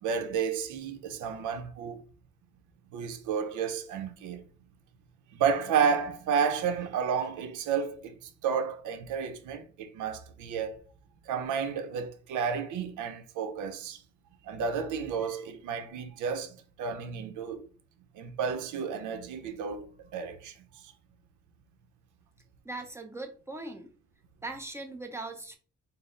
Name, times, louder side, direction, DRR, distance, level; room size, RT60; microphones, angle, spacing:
voice 1, 0.0-2.0 2.9-4.4 5.3-10.8 11.2-14.0 14.4-17.6 18.1-20.5, right 6 dB, 80° right, 0.6 m, -31 dB
voice 2, 22.6-23.9 24.4-25.6, right 2 dB, 10° right, 0.7 m, -39 dB
3.8 x 2.0 x 3.8 m
cardioid pair, 90°, 30 cm